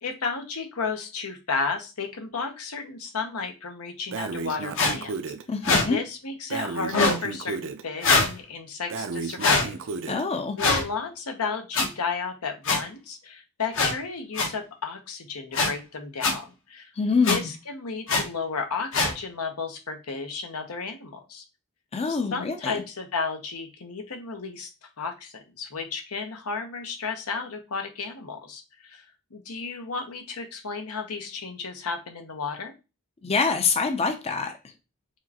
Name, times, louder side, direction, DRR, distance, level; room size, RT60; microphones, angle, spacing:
voice 1, 0.0-5.1 5.8-9.8 10.6-16.9 17.3-21.4 22.1-24.7 25.0-29.1 29.3-32.7, left 4 dB, 85° left, 1.0 m, -33 dB
Breathing, 4.1-5.4 6.5-7.8 8.9-10.2, right 4 dB, 60° right, 0.5 m, -33 dB
sound 1, 4.7-4.9 5.6-5.8 6.9-7.2 8.0-8.3 9.4-9.6 10.6-10.8 11.7-11.8 12.6-12.8 13.7-13.9 14.3-14.5 15.5-15.7 16.2-16.3 17.2-17.4 18.1-18.2 18.9-19.1, left 3 dB, 65° left, 1.1 m, -22 dB
voice 2, 5.5-6.0 10.1-10.6 17.0-17.5 21.9-22.8 33.2-34.5, left 4 dB, 30° left, 0.5 m, -25 dB
4.8 x 3.2 x 2.8 m
head